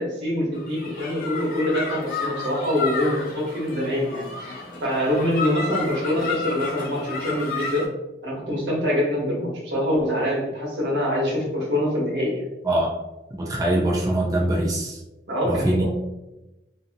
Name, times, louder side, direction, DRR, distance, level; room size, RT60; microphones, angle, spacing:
voice 1, 0.0-7.9 8.2-12.4 15.3-15.8, left 1 dB, 85° right, -4 dB, 1.1 m, -25 dB
sound 1, 0.5-7.9, left 4 dB, 50° left, 0.7 m, -32 dB
voice 2, 13.4-15.0 15.4-15.8, right 1 dB, 20° right, -3 dB, 0.4 m, -23 dB
2.6 x 2.5 x 2.6 m, 1.0 s
head